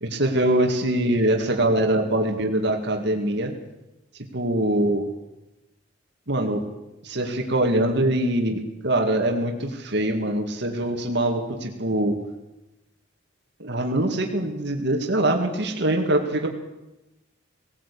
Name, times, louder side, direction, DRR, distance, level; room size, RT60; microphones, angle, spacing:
voice 1, 0.0-3.6 4.3-5.1 6.3-6.6 7.0-12.2 13.6-16.5, right 1 dB, 65° right, 3 dB, 2.3 m, -23 dB
18.0 x 18.0 x 8.5 m, 0.98 s
head